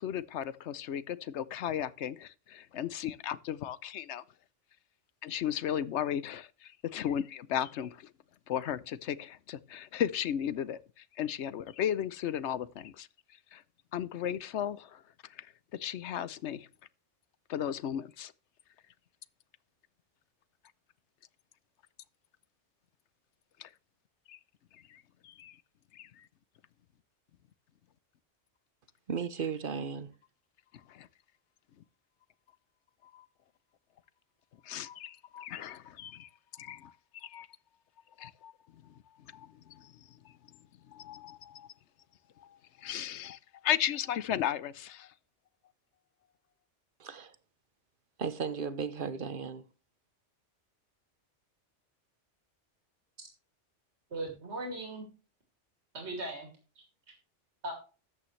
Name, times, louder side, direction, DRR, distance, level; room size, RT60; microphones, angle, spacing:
voice 1, 0.0-4.2 5.2-8.1 8.5-13.1 13.5-13.6 13.9-15.0 15.3-16.7 17.5-18.3 23.6-23.7 24.3-24.4 24.7-25.6 25.9-26.3 30.9-31.1 33.1-33.2 34.6-37.5 38.2-38.5 38.8-38.9 39.3-40.3 40.9-41.7 42.4-45.1, left 10 dB, 70° left, 1.0 m, -36 dB
voice 2, 29.1-30.1 47.0-47.4 48.2-49.6, right 6 dB, 50° right, 1.0 m, -35 dB
voice 3, 54.1-55.0 55.9-56.5 56.8-56.9 57.6-57.7, right 2 dB, 65° right, 2.9 m, -38 dB
13.5 x 8.6 x 3.2 m
omnidirectional pair, 1.2 m